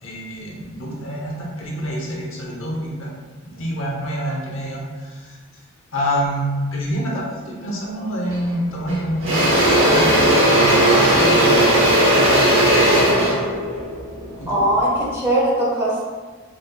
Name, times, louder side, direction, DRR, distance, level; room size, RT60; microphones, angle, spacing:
voice 1, 0.0-3.1 3.4-5.4 5.9-13.5 14.4-14.6, equal, 70° left, -3 dB, 0.9 m, -27 dB
Engine / Drill, 8.3-8.5 8.9-15.0, right 1 dB, 65° right, 1.2 m, -16 dB
voice 2, 14.5-16.0, right 1 dB, 10° right, -8 dB, 1.0 m, -20 dB
5.0 x 3.0 x 2.3 m, 1.4 s
head